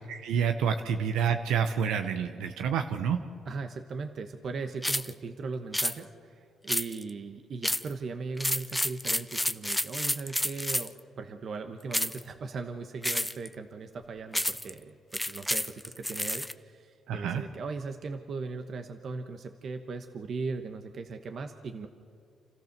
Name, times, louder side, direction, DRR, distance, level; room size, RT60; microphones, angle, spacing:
voice 1, 0.1-3.2 17.1-17.5, right 7 dB, 85° right, 7 dB, 0.8 m, -28 dB
voice 2, 3.4-21.9, right 4 dB, 55° right, 6 dB, 1.1 m, -38 dB
sound 1, 4.8-5.1 5.7-6.0 6.7-7.1 7.6-7.9 8.4-11.0 11.9-12.2 13.0-13.5 14.3-14.7 15.1-16.5, left 1 dB, 5° left, 0.6 m, -30 dB
28.0 x 14.0 x 6.7 m, 2.3 s
cardioid pair, 90°, 0 cm